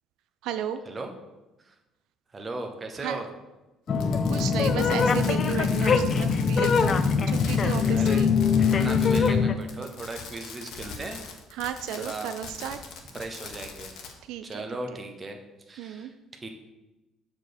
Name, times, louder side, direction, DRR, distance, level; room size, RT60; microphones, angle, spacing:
voice 1, 0.4-0.8 3.0-3.2 4.3-8.3 8.8-9.0 11.6-12.8 14.3-14.6 15.8-16.1, right 9 dB, 70° right, 10 dB, 0.4 m, -34 dB
voice 2, 2.3-3.3 7.9-8.2 8.6-11.2 12.0-12.3 12.6-12.8 13.1-13.9 14.4-15.4 15.7-16.1 16.4-16.5, right 2 dB, 20° right, 4 dB, 0.8 m, -37 dB
Fireworks, 3.9-9.4 9.6-14.1, left 5 dB, 60° left, 1.1 m, -42 dB
sound 1, 3.9-9.5, left 5 dB, 30° left, 0.3 m, -22 dB
7.2 x 4.1 x 6.6 m, 1.0 s
cardioid pair, 180°, 0 cm